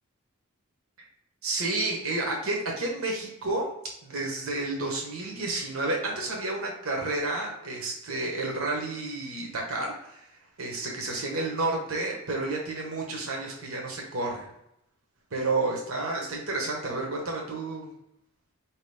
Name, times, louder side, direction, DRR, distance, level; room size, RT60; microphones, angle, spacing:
voice 1, 1.4-3.7 4.0-10.3 10.6-14.5 15.3-17.9, right 2 dB, 70° right, -1 dB, 1.1 m, -30 dB
4.6 x 3.0 x 3.4 m, 0.80 s
head